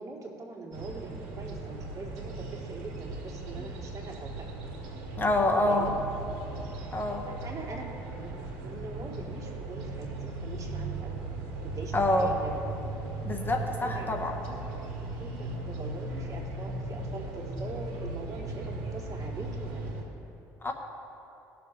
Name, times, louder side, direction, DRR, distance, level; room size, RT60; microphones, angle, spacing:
voice 1, 0.0-4.4 5.6-6.0 7.2-7.8 8.1-8.3 8.6-11.3 11.6-12.5 13.8-14.1 15.2-19.9, right 3 dB, 50° right, -2 dB, 2.6 m, -42 dB
sound 1, 0.7-20.0, right 2 dB, 85° right, 2.1 m, -37 dB
voice 2, 5.2-5.9 6.9-7.3 11.9-12.3 13.2-14.4 20.6-20.7, left 2 dB, 25° left, 3 dB, 1.3 m, -26 dB
19.5 x 7.0 x 3.4 m, 2.9 s
supercardioid pair, 70°, 8 cm